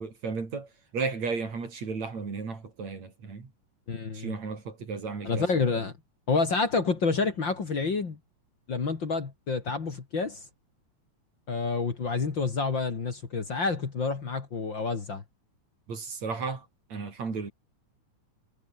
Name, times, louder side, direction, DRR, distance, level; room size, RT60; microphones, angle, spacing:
voice 1, 0.0-3.5 4.1-5.5 15.9-17.5, right 4 dB, 60° right, 5.9 m, -34 dB
voice 2, 3.9-4.3 5.2-5.9 6.3-8.2 8.7-10.4 11.5-15.2, left 4 dB, 40° left, 2.9 m, -28 dB
omnidirectional pair, 3.5 m